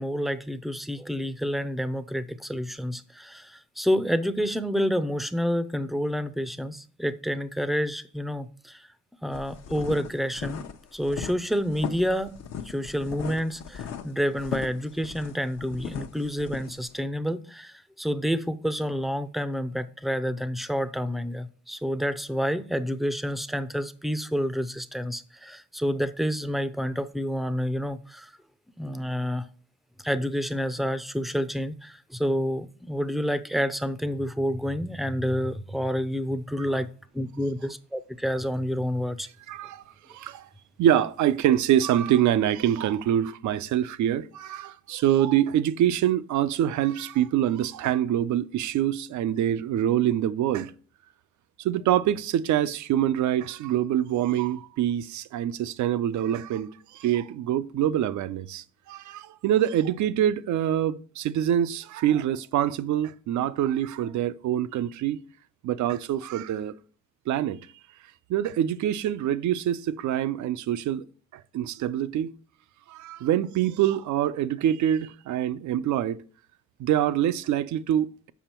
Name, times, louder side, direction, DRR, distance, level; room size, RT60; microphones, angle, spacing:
voice 1, 0.0-8.9 9.2-10.6 10.9-12.4 12.6-28.3 28.8-29.5 30.0-36.9 37.1-39.3, equal, ahead, 0.5 m, -29 dB
sound 1, 9.3-16.9, left 8 dB, 60° left, 0.9 m, -37 dB
voice 2, 39.5-39.8 40.1-40.5 40.8-50.7 51.6-65.2 65.6-66.7 67.3-67.6 68.3-71.0 71.3-72.3 72.9-76.2 76.8-78.3, right 11 dB, 75° right, 0.6 m, -25 dB
7.1 x 5.2 x 4.4 m
cardioid pair, 90°, 30 cm